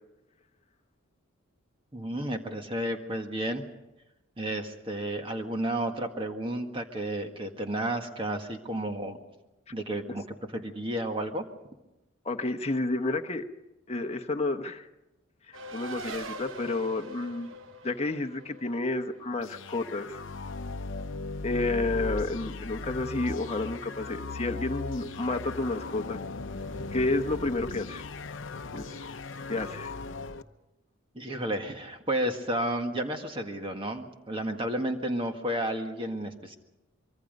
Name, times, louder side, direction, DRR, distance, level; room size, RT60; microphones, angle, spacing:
voice 1, 1.9-3.6 4.4-9.2 9.7-10.2 10.5-11.5 31.2-36.6, right 1 dB, 25° right, 4 dB, 1.7 m, -32 dB
voice 2, 12.2-13.4 13.9-14.9 15.5-17.5 17.8-20.2 21.4-26.2 26.9-28.0 28.7-29.0 29.5-29.9, left 2 dB, 30° left, 6 dB, 1.0 m, -30 dB
Race car auto racing, 15.5-20.5, right 1 dB, 70° right, 1.1 m, -43 dB
sound 1, 19.4-30.4, left 3 dB, 65° left, 0.8 m, -37 dB
24.5 x 23.5 x 5.3 m, 0.99 s
head